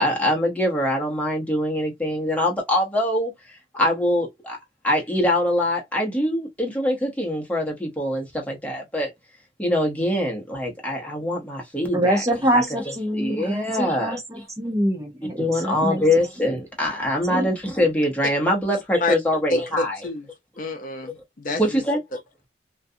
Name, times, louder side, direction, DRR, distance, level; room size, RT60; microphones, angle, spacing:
voice 1, 0.0-3.3 3.7-4.6 4.8-9.1 9.6-12.2 12.5-12.8 13.1-14.4 15.4-20.0 21.6-22.0, left 1 dB, 10° left, 0.9 m, -23 dB
voice 2, 11.9-16.0 17.3-17.5, right 1 dB, 20° right, 0.7 m, -24 dB
voice 3, 19.5-20.3 20.6-21.8, left 2 dB, 50° left, 0.5 m, -28 dB
2.4 x 2.2 x 2.6 m
head